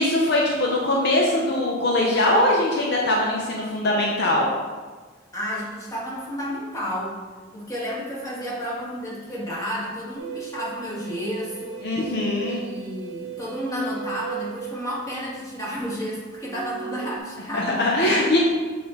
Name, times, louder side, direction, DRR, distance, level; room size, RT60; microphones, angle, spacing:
voice 1, 0.0-4.4 11.8-12.6 17.5-18.4, left 1 dB, 55° left, -2 dB, 0.8 m, -21 dB
voice 2, 5.3-7.2 7.5-11.9 12.5-17.9, equal, 15° left, -7 dB, 1.8 m, -31 dB
sound 1, 10.2-15.7 16.5-17.2, right 7 dB, 60° right, 0.8 m, -37 dB
7.3 x 4.3 x 3.8 m, 1.4 s
head